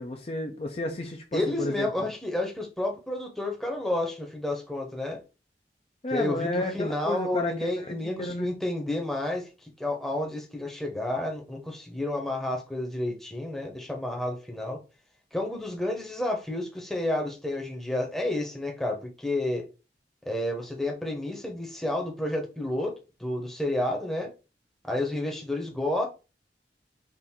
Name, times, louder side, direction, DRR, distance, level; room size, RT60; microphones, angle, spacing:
voice 1, 0.0-1.9 6.0-8.5, left 2 dB, 35° left, 0.5 m, -32 dB
voice 2, 1.3-5.2 6.1-14.8 15.3-19.7 20.3-24.3 24.9-26.1, left 1 dB, ahead, 0.8 m, -30 dB
4.3 x 2.5 x 3.6 m
head